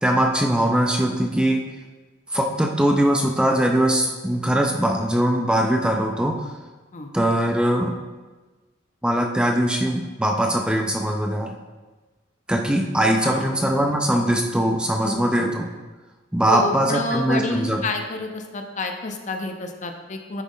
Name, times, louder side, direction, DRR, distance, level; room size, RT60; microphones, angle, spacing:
voice 1, 0.0-1.6 2.3-6.4 7.1-8.0 9.0-11.5 12.5-15.7 16.3-17.8, right 1 dB, 5° right, 2 dB, 0.4 m, -21 dB
voice 2, 13.2-13.5 15.0-15.5 16.5-20.4, left 2 dB, 40° left, 5 dB, 0.6 m, -29 dB
10.0 x 4.1 x 3.8 m, 1.2 s
head